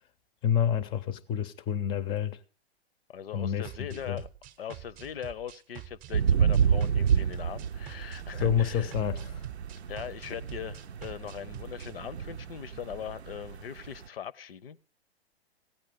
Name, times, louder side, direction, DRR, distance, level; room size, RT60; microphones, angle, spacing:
voice 1, 0.4-2.4 3.3-4.2 8.4-9.4, left 9 dB, 15° left, 0.5 m, -29 dB
voice 2, 3.1-4.3 4.6-8.9 9.9-14.8, left 9 dB, 65° left, 0.6 m, -40 dB
sound 1, 3.6-11.9, right 13 dB, 30° right, 0.7 m, -47 dB
sound 2, 6.1-14.0, right 7 dB, 85° right, 0.6 m, -29 dB
16.0 x 9.0 x 5.1 m
hypercardioid pair, 120°, 32 cm